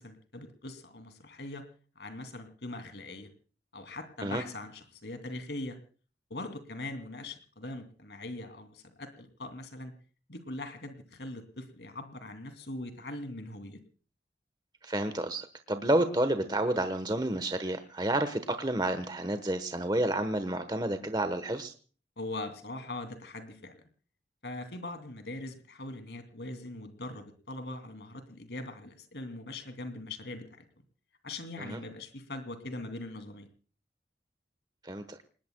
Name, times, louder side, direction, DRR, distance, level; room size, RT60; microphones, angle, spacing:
voice 1, 0.0-1.6 2.0-3.3 3.7-5.8 6.3-9.9 10.3-13.8 22.2-23.8 24.4-30.6 31.2-33.5, left 2 dB, 75° left, 8 dB, 2.8 m, -41 dB
voice 2, 14.8-21.7 31.6-31.8 34.8-35.2, right 1 dB, 25° right, 9 dB, 1.1 m, -30 dB
29.0 x 19.5 x 2.3 m, 0.40 s
head